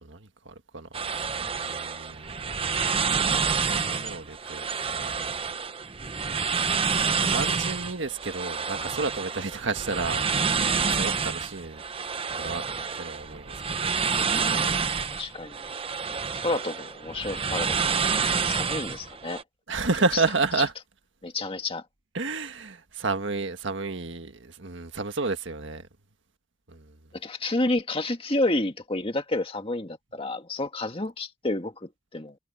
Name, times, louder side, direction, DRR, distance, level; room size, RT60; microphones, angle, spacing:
voice 1, 0.0-3.2 3.5-5.2 6.6-6.8 7.3-11.8 12.3-12.6 13.0-13.5 13.8-13.9 19.7-20.7 22.1-25.9 26.7-26.9, right 3 dB, 65° right, 1.7 m, -31 dB
sound 1, 0.9-19.4, right 5 dB, 30° right, 0.8 m, -28 dB
voice 2, 15.1-15.6 16.4-17.8 18.1-19.4 21.2-21.8 27.1-32.4, left 2 dB, 30° left, 1.9 m, -30 dB
head